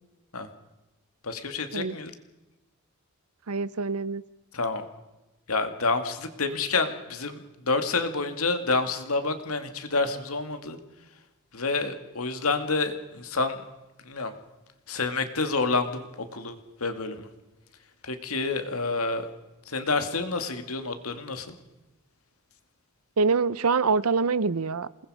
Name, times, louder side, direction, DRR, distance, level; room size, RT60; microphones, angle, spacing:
voice 1, 1.2-2.1 4.5-4.8 5.5-10.8 11.5-13.6 14.1-14.3 14.9-16.1 16.3-17.3 18.0-19.3 19.7-21.6, left 3 dB, 75° left, 8 dB, 2.2 m, -28 dB
voice 2, 3.5-4.2 23.2-24.9, right 4 dB, 80° right, 18 dB, 0.8 m, -25 dB
28.0 x 20.0 x 4.9 m, 1.0 s
head